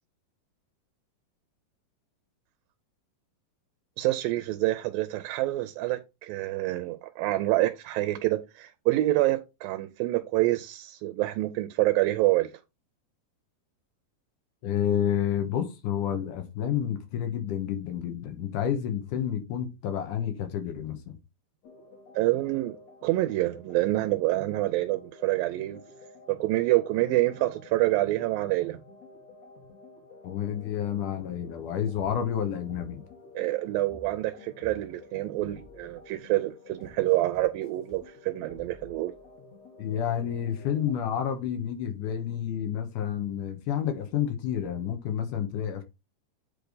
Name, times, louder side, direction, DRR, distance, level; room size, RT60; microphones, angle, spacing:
voice 1, 4.0-12.5 22.1-22.8 23.0-25.8 26.4-28.8 33.4-39.1, right 17 dB, 90° right, 2.4 m, -27 dB
voice 2, 14.6-21.2 30.2-33.0 39.8-45.8, left 9 dB, 70° left, 2.5 m, -30 dB
sound 1, 21.6-40.9, left 3 dB, 55° left, 2.4 m, -51 dB
sound 2, 31.9-33.1 33.4-36.2 36.8-38.1 38.5-39.3, left 2 dB, 90° left, 3.9 m, -54 dB
8.4 x 3.4 x 3.9 m
omnidirectional pair, 4.0 m